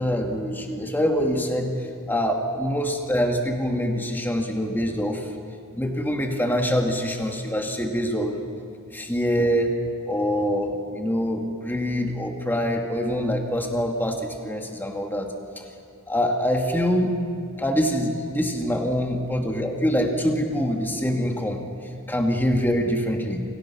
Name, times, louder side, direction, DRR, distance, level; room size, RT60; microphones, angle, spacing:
voice 1, 0.0-1.8 2.1-5.3 5.8-8.4 8.9-9.7 10.1-15.3 15.6-15.7 16.1-17.2 17.6-21.6 22.1-23.4, equal, 10° left, 2 dB, 2.4 m, -24 dB
29.5 x 26.5 x 6.2 m, 2.4 s
head